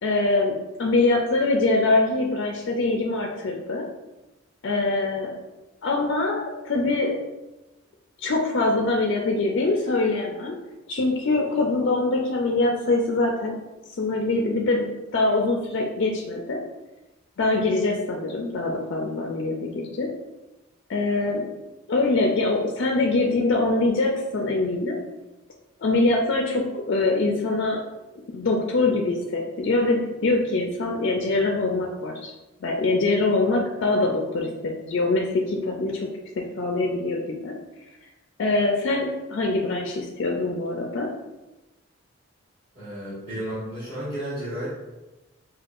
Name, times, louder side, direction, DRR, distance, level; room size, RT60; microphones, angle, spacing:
voice 1, 0.0-3.8 4.6-5.3 5.8-7.1 8.2-10.5 10.9-13.6 13.9-14.9 15.1-16.6 17.4-20.1 20.9-21.5 21.9-25.0 25.8-27.8 28.3-32.3 32.6-36.1 36.6-37.5 38.4-41.1, left 2 dB, 60° left, 0 dB, 0.4 m, -23 dB
voice 2, 42.7-44.7, right 1 dB, 30° right, -14 dB, 1.4 m, -32 dB
5.1 x 2.3 x 2.4 m, 1.0 s
head